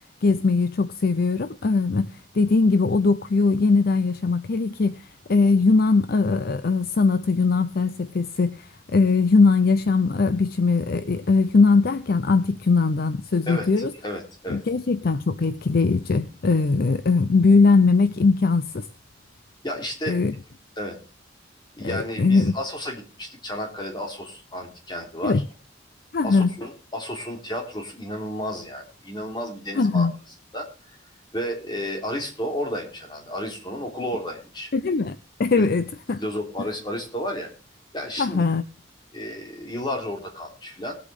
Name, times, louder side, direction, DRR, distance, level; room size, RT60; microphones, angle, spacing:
voice 1, 0.2-13.9 14.5-18.9 20.1-20.3 21.8-22.6 25.2-25.4 26.1-26.5 29.8-30.1 34.7-36.2 38.2-38.6, left 4 dB, 50° left, 13 dB, 0.5 m, -20 dB
voice 2, 13.5-14.6 19.6-20.2 20.8-20.9 21.8-25.4 26.2-30.1 30.5-30.7 31.3-34.7 35.6-35.7 36.2-37.5 37.9-38.4 39.1-41.0, equal, 25° left, 1 dB, 3.3 m, -32 dB
20.0 x 8.3 x 3.5 m, 0.34 s
head